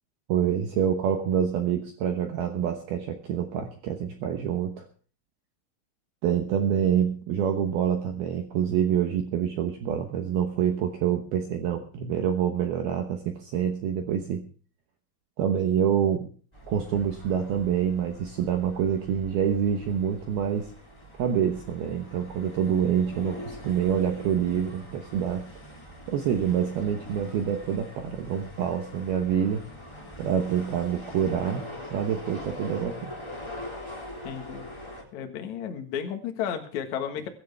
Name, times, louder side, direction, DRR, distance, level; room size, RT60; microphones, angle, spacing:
voice 1, 0.3-4.9 6.2-14.4 15.4-16.3 16.7-20.7 21.2-25.5 26.1-29.6 30.2-31.6 31.9-33.1, right 8 dB, 75° right, 5 dB, 2.3 m, -26 dB
sound 1, 16.5-35.0, left 1 dB, 10° left, 1.8 m, -43 dB
voice 2, 34.2-34.7 35.1-37.3, left 8 dB, 85° left, 5 dB, 1.6 m, -33 dB
22.5 x 11.0 x 3.4 m, 0.41 s
omnidirectional pair, 6.0 m